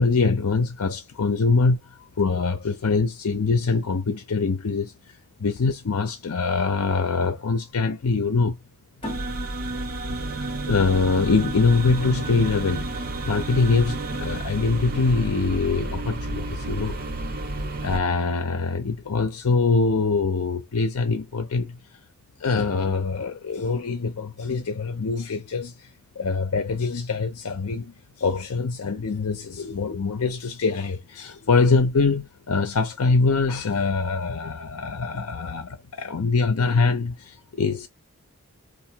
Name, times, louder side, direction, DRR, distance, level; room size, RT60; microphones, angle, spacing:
voice 1, 0.0-8.6 10.2-17.0 17.8-21.8 22.4-25.9 26.2-37.9, left 4 dB, 80° left, 0.6 m, -24 dB
sound 1, 9.0-12.2, left 2 dB, 25° left, 0.6 m, -42 dB
sound 2, 9.0-18.0, right 2 dB, 45° right, 0.6 m, -31 dB
4.5 x 2.6 x 2.8 m
head